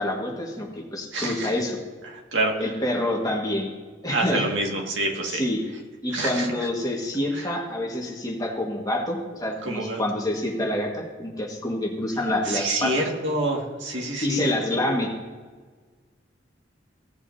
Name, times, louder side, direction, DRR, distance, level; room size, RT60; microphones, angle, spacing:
voice 1, 0.0-1.8 2.6-3.7 4.0-4.4 5.3-5.6 6.0-12.9 14.2-15.2, left 1 dB, 20° left, 0 dB, 1.6 m, -27 dB
voice 2, 1.1-1.5 2.1-2.5 4.1-5.4 6.1-6.5 7.3-7.5 9.6-10.0 12.5-14.5, right 2 dB, 90° right, 0 dB, 2.0 m, -27 dB
16.5 x 7.2 x 2.7 m, 1.5 s
head